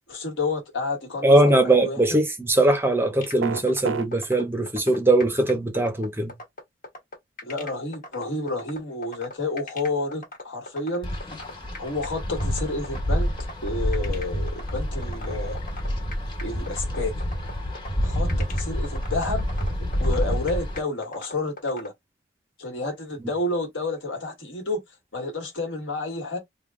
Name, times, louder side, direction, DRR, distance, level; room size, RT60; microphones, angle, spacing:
voice 1, 0.1-2.0 7.4-11.1 11.8-13.3 13.6-15.6 16.4-17.1 18.0-19.4 20.0-21.9 22.6-24.8 25.1-26.4, left 2 dB, 70° left, 1.5 m, -30 dB
voice 2, 1.2-6.3, right 2 dB, 10° right, 0.6 m, -20 dB
sound 1, 3.2-21.9, left 2 dB, 45° left, 1.3 m, -39 dB
sound 2, 3.4-4.1, right 6 dB, 75° right, 0.5 m, -27 dB
Wind, 11.0-20.8, equal, 25° left, 1.3 m, -28 dB
3.4 x 2.2 x 3.6 m
head